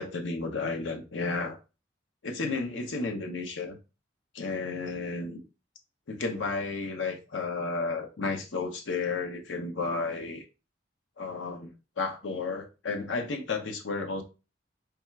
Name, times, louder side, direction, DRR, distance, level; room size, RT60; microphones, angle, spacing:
voice 1, 0.0-1.6 2.2-3.8 4.3-5.4 6.1-10.4 11.2-14.2, left 3 dB, 90° left, 0.7 m, -32 dB
3.4 x 2.3 x 4.4 m
head